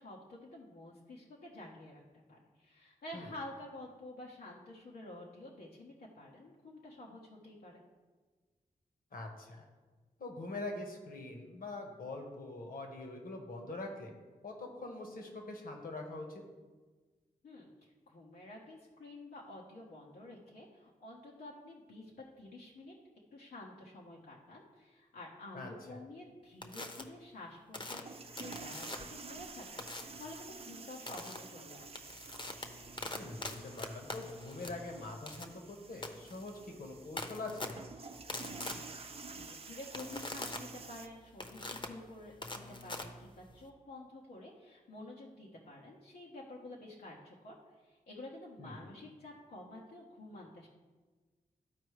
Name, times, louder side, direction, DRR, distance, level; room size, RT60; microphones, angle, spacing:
voice 1, 0.0-7.8 17.4-22.1 22.4-22.9 23.3-32.0 38.3-50.7, left 1 dB, 90° left, -4 dB, 1.1 m, -50 dB
voice 2, 9.1-9.6 10.2-14.1 14.4-16.4 25.5-26.0 33.1-37.7 48.6-48.8, left 2 dB, 70° left, 2 dB, 1.4 m, -44 dB
sound 1, 26.6-27.0 27.7-29.2 29.8-30.2 31.1-31.4 31.8-43.7, left 2 dB, 35° left, 0.9 m, -44 dB
sound 2, 28.0-41.1, right 4 dB, 40° right, 0.6 m, -50 dB
13.0 x 4.5 x 3.2 m, 1.3 s
cardioid pair, 60°, 15 cm